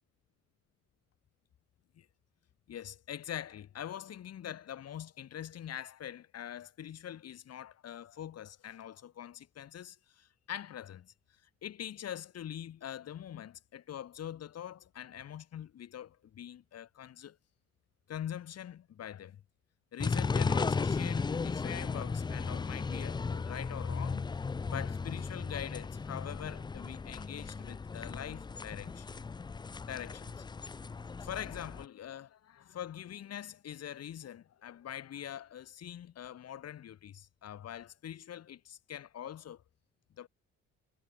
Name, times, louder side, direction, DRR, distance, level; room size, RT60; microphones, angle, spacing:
voice 1, 2.7-11.1 11.6-17.4 18.1-19.4 19.9-24.3 24.6-29.1 29.8-30.4 31.2-39.6 40.2-40.3, left 10 dB, 55° left, 1.3 m, -44 dB
sound 1, 20.0-31.8, left 4 dB, 15° left, 0.3 m, -35 dB
cardioid pair, 90°, 30 cm